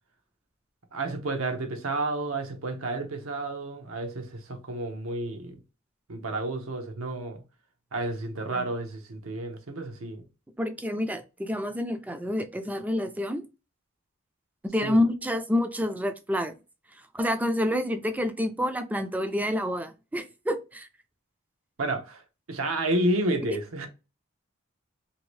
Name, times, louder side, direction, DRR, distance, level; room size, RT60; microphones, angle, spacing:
voice 1, 0.9-5.6 6.1-7.4 7.9-10.2 14.8-15.0 21.8-22.2 22.5-23.9, right 2 dB, 80° right, 0.8 m, -31 dB
voice 2, 10.6-13.4 14.7-16.6 17.1-20.9 23.5-23.6, left 1 dB, 10° right, 0.4 m, -28 dB
2.8 x 2.5 x 3.1 m
head